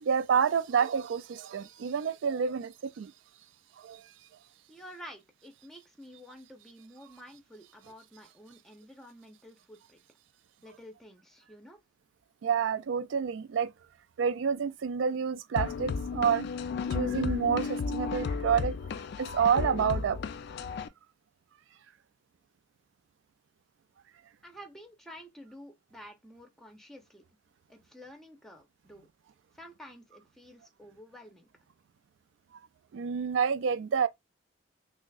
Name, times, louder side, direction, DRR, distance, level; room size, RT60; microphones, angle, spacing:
voice 1, 0.0-3.1 3.8-4.0 12.4-13.7 14.2-16.5 16.9-18.8 19.2-20.2 32.9-34.1, right 7 dB, 70° right, 0.3 m, -28 dB
voice 2, 4.7-10.0 10.6-11.8 24.4-27.3 27.7-29.1 29.5-31.5, equal, ahead, 0.7 m, -50 dB
sound 1, 15.6-20.9, left 5 dB, 60° left, 0.3 m, -33 dB
6.0 x 2.0 x 2.3 m
head